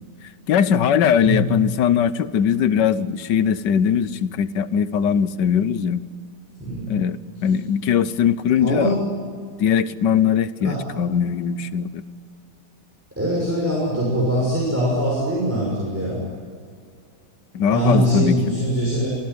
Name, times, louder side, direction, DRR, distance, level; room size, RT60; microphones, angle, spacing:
voice 1, 0.5-6.0 6.9-8.9 9.6-12.0 17.5-18.4, left 8 dB, 80° left, 15 dB, 1.5 m, -20 dB
voice 2, 6.6-6.9 8.6-9.1 10.6-10.8 13.2-16.2 17.7-19.1, right 1 dB, 10° right, -5 dB, 6.2 m, -22 dB
26.0 x 16.0 x 9.6 m, 2.1 s
omnidirectional pair, 1.9 m